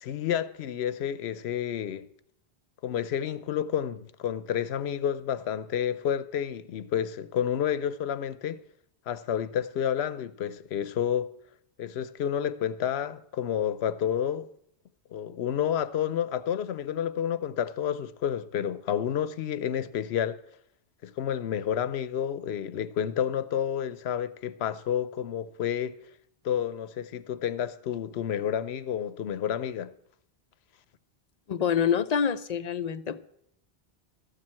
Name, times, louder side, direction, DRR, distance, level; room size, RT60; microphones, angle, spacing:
voice 1, 0.0-2.1 2.8-8.6 9.1-11.3 11.8-14.5 15.1-20.4 21.0-26.0 26.4-29.9, left 9 dB, 80° left, 0.9 m, -30 dB
voice 2, 31.5-33.2, left 7 dB, 50° left, 0.6 m, -26 dB
13.0 x 7.6 x 7.5 m
omnidirectional pair, 1.1 m